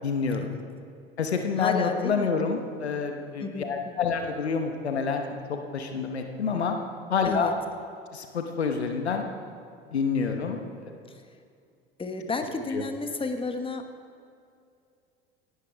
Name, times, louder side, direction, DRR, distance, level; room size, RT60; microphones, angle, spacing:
voice 1, 0.0-0.5 1.2-6.8 7.1-7.5 8.1-9.2 9.9-10.6 12.7-12.8, left 5 dB, 90° left, 5 dB, 1.1 m, -28 dB
voice 2, 1.4-2.3 3.4-4.1 7.2-7.6 11.1-11.2 12.0-13.9, left 3 dB, 15° left, 6 dB, 1.2 m, -32 dB
17.5 x 11.5 x 3.5 m, 2.4 s
hypercardioid pair, 70°, 32 cm